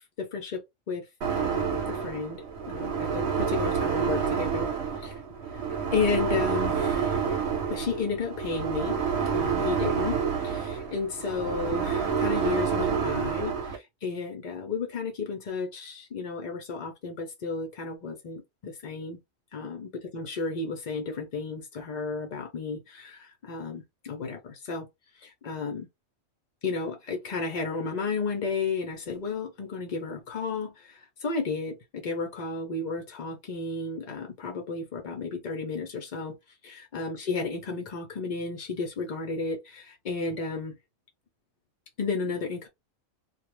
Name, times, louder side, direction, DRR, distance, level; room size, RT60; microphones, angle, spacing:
voice 1, 0.2-1.1 1.4-4.7 5.0-5.2 5.9-7.4 7.7-9.0 9.3-10.2 10.4-19.2 19.5-24.9 25.1-25.9 26.6-36.4 36.6-40.7 42.0-42.7, left 4 dB, 60° left, 0.4 m, -33 dB
sound 1, 1.2-13.8, right 6 dB, 60° right, 0.9 m, -28 dB
2.3 x 2.0 x 3.0 m
omnidirectional pair, 1.4 m